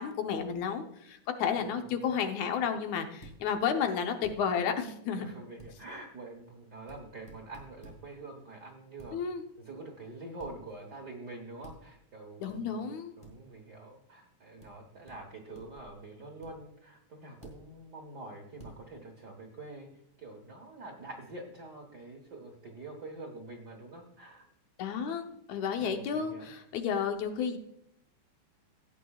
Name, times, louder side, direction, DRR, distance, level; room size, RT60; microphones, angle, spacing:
voice 1, 0.0-5.3 9.1-9.4 12.4-13.1 24.8-27.6, left 7 dB, 75° left, 5 dB, 2.2 m, -32 dB
voice 2, 1.5-1.8 5.2-9.2 9.6-12.9 13.2-19.9 20.2-24.5 25.8-26.5, right 2 dB, 60° right, 1 dB, 1.0 m, -46 dB
sound 1, 3.2-3.4 4.2-4.4 5.6-5.7 6.9-7.0 7.3-8.0 9.0-9.1 10.4-10.6 11.6-11.8 12.5-12.6 13.2-13.3 14.6-14.7 15.1-15.2 15.5-15.9 16.4-16.5 17.4-17.6 18.6-18.8, right 1 dB, 10° left, 2.0 m, -50 dB
16.0 x 9.0 x 2.4 m, 0.75 s
omnidirectional pair, 3.5 m